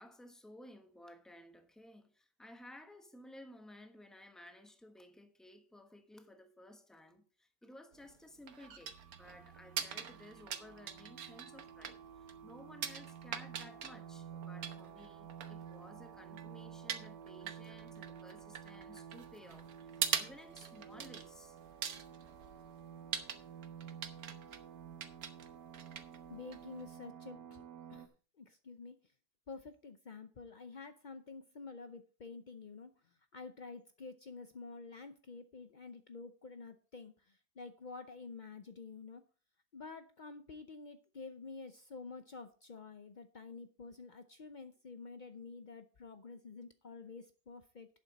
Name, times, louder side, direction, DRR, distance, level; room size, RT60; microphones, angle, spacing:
voice 1, 0.0-21.6, left 1 dB, ahead, 0.9 m, -56 dB
sound 1, 7.9-26.9, right 7 dB, 60° right, 1.4 m, -44 dB
sound 2, 8.8-28.1, right 8 dB, 85° right, 1.5 m, -52 dB
voice 2, 26.3-27.6 27.9-28.1 28.4-29.0 29.5-39.2 39.7-47.9, left 4 dB, 80° left, 0.4 m, -49 dB
11.5 x 8.7 x 4.0 m
omnidirectional pair, 1.8 m